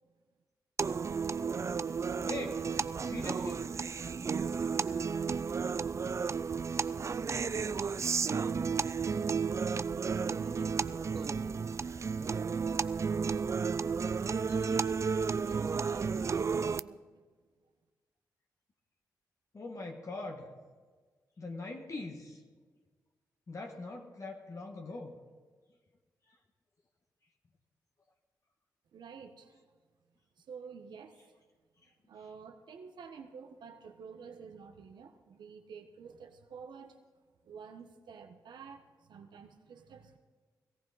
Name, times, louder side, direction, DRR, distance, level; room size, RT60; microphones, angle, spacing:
sound 1, 0.8-16.8, right 5 dB, 40° right, 0.4 m, -32 dB
voice 1, 2.2-2.6 3.0-3.7 14.5-14.8 19.5-20.5 21.4-22.4 23.5-25.2, left 2 dB, 45° left, 2 dB, 1.5 m, -42 dB
voice 2, 7.7-8.1 8.4-9.7 10.2-11.7 14.7-17.2 28.9-29.6 30.4-31.3 32.1-37.0 37.4-40.2, right 6 dB, 80° right, 6 dB, 1.3 m, -50 dB
18.0 x 14.5 x 4.1 m, 1.4 s
cardioid pair, 60°, 7 cm